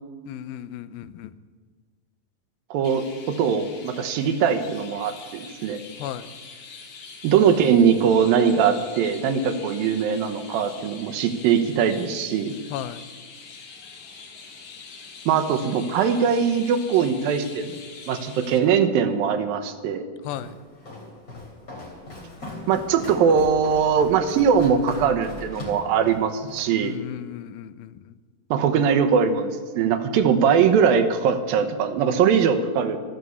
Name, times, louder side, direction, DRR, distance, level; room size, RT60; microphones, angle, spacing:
voice 1, 0.3-1.3 6.0-6.3 12.7-13.1 20.2-20.6 26.8-28.2, left 11 dB, 90° left, 14 dB, 2.5 m, -35 dB
voice 2, 2.7-5.8 7.2-12.6 15.3-17.8 18.1-20.1 22.7-26.9 28.5-33.0, right 7 dB, 80° right, 8 dB, 2.8 m, -21 dB
Chirp tweet, 2.8-18.6, left 5 dB, 60° left, 3.0 m, -44 dB
Walk footsteps, 20.3-26.8, left 1 dB, 25° left, 3.3 m, -39 dB
13.5 x 13.0 x 7.0 m, 1.5 s
omnidirectional pair, 4.1 m